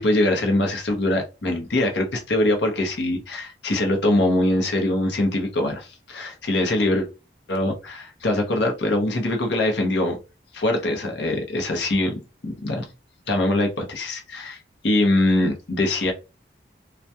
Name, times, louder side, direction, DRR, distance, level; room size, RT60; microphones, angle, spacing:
voice 1, 0.0-7.1 7.5-10.2 10.5-12.1 12.4-12.8 13.3-16.1, left 1 dB, 75° left, 3 dB, 0.7 m, -23 dB
2.2 x 2.2 x 2.7 m, 0.29 s
head